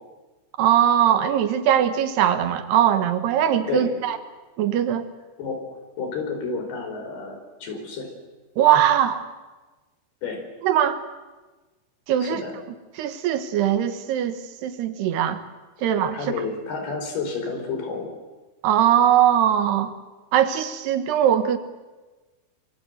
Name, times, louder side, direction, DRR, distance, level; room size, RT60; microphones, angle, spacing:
voice 1, 0.6-4.2 4.6-5.1 8.6-9.2 10.6-11.0 12.1-12.4 13.0-15.4 15.8-16.2 18.6-19.9 20.3-21.6, right 10 dB, 80° right, 10 dB, 3.5 m, -20 dB
voice 2, 6.0-8.1 10.2-10.4 12.2-12.5 16.1-18.1, left 4 dB, 70° left, 4 dB, 6.4 m, -30 dB
25.5 x 23.0 x 8.0 m, 1.2 s
omnidirectional pair, 4.6 m